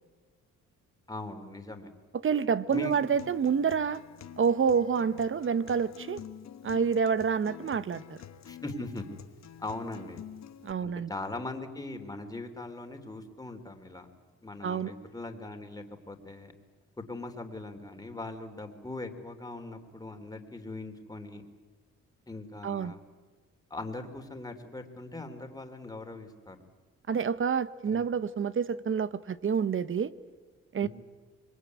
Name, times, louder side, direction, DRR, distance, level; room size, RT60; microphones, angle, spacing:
voice 1, 1.1-1.9 2.7-2.9 8.4-9.1 9.6-10.2 10.8-14.1 14.4-16.5 17.0-21.4 22.3-23.0 23.7-26.6 27.9-28.1 30.8-30.9, left 2 dB, 10° left, 5 dB, 3.4 m, -40 dB
voice 2, 2.2-4.0 4.4-6.2 6.6-8.2 10.6-11.1 14.6-14.9 22.6-22.9 27.1-30.1 30.7-30.9, right 6 dB, 45° right, 15 dB, 1.1 m, -28 dB
Acoustic guitar, 2.7-10.7, left 9 dB, 60° left, 1.5 m, -48 dB
25.5 x 22.0 x 9.6 m, 1.4 s
cardioid pair, 90°, 30 cm